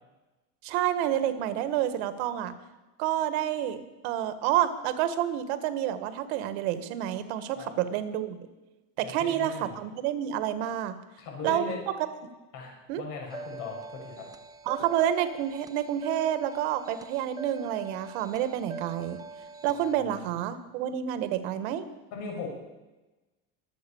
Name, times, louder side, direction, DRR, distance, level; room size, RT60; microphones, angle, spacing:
voice 1, 0.6-2.5 3.0-8.4 9.0-10.9 11.4-11.6 12.2-12.3 12.9-13.0 14.6-19.2 19.6-21.9, right 11 dB, 90° right, 11 dB, 1.6 m, -29 dB
voice 2, 9.0-9.8 11.2-11.8 12.5-14.3 20.0-20.2 22.1-22.5, left 4 dB, 70° left, 0 dB, 6.5 m, -39 dB
sound 1, 13.3-19.9, right 3 dB, 10° right, 0.4 m, -43 dB
23.5 x 8.2 x 7.1 m, 1.1 s
cardioid pair, 155°, 32 cm